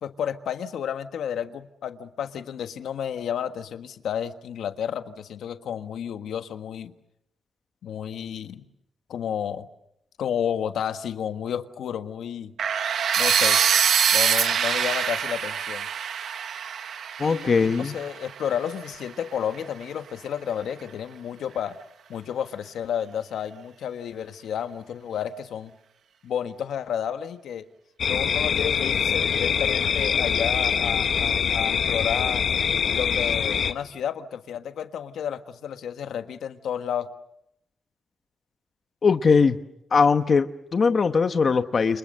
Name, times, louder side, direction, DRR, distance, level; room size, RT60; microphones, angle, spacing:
voice 1, 0.0-6.9 7.8-8.6 9.1-9.7 10.2-12.5 13.2-13.6 14.1-15.9 17.2-21.7 22.1-25.7 26.2-27.7 28.0-32.4 32.9-37.1, left 8 dB, 90° left, 8 dB, 1.5 m, -31 dB
sound 1, 12.6-18.5, right 7 dB, 65° right, 1.2 m, -24 dB
voice 2, 17.2-17.9 39.0-39.6 39.9-42.0, left 5 dB, 35° left, 8 dB, 1.0 m, -20 dB
sound 2, 28.0-33.7, left 7 dB, 55° left, 1.3 m, -24 dB
30.0 x 26.0 x 6.7 m, 0.80 s
wide cardioid pair, 175°, 0 cm